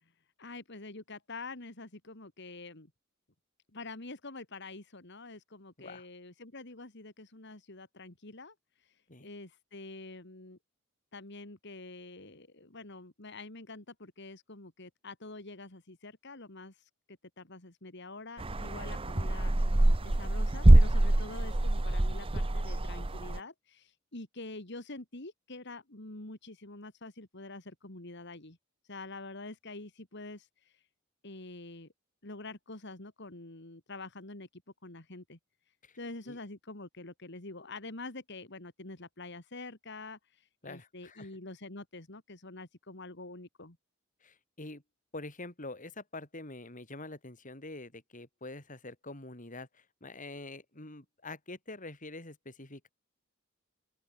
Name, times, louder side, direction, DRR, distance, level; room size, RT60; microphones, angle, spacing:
voice 1, 0.4-2.9 3.7-10.6 11.1-28.6 28.8-30.9 31.2-31.9 32.2-35.4 36.0-43.8, left 2 dB, 60° left, 3.0 m, -46 dB
sound 1, 18.4-23.4, right 1 dB, 25° right, 0.9 m, -24 dB
voice 2, 40.6-41.3 44.2-44.8 45.1-52.9, left 2 dB, 40° left, 4.9 m, -45 dB
open air
head